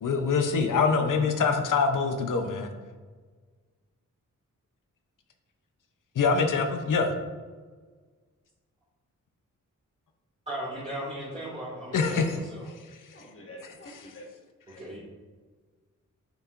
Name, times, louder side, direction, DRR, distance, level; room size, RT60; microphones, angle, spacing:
voice 1, 0.0-2.7 6.1-7.1 11.9-12.4, left 5 dB, 80° left, 6 dB, 0.8 m, -24 dB
voice 2, 10.5-12.6 14.7-15.0, right 1 dB, 20° right, -10 dB, 2.0 m, -37 dB
voice 3, 13.1-14.3 14.7-15.0, equal, 40° left, -1 dB, 1.5 m, -47 dB
9.1 x 5.5 x 2.5 m, 1.4 s
wide cardioid pair, 140°, 31 cm